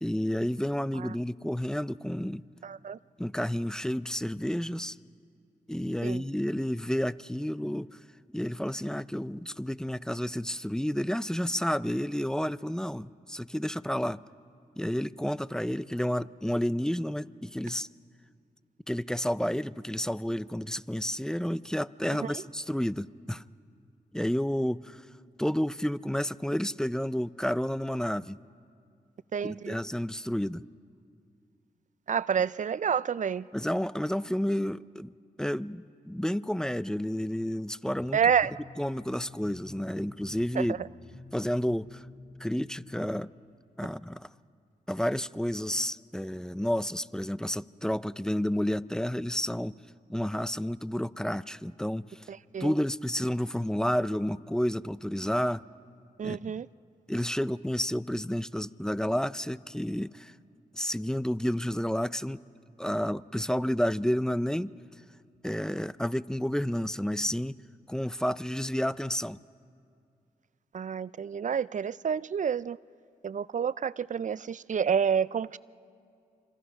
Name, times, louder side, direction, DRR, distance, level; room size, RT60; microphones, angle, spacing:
voice 1, 0.0-2.4 3.2-5.0 5.7-8.0 8.3-14.2 14.8-17.9 18.9-23.4 24.1-25.0 25.4-28.4 29.4-30.6 33.5-38.2 38.8-40.8 41.3-42.1 42.4-43.3 43.8-44.3 44.9-49.7 50.1-52.3 52.6-55.7 56.2-56.6 57.1-60.3 60.7-62.4 62.8-64.7 65.4-67.6 67.9-69.4, equal, 5° left, 0.6 m, -30 dB
voice 2, 2.6-3.0 6.0-6.2 22.2-22.3 29.3-29.8 32.1-33.5 38.1-38.5 40.6-40.7 52.3-52.7 56.2-56.7 70.7-72.8 73.2-75.6, right 7 dB, 50° right, 0.5 m, -29 dB
sound 1, 37.9-43.3, left 3 dB, 55° left, 3.6 m, -50 dB
25.5 x 25.5 x 5.9 m
cardioid pair, 50°, 16 cm